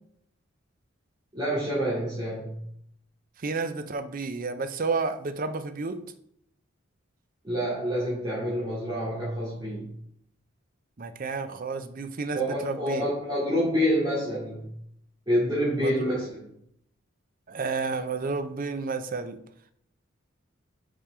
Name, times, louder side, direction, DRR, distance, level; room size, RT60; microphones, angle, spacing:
voice 1, 1.3-2.6 7.4-9.9 12.3-14.7 15.3-16.5, equal, 20° right, -10 dB, 2.5 m, -27 dB
voice 2, 3.4-6.0 11.0-13.0 15.8-16.1 17.5-19.4, right 4 dB, 40° right, 10 dB, 0.6 m, -31 dB
5.6 x 5.1 x 4.9 m, 0.71 s
head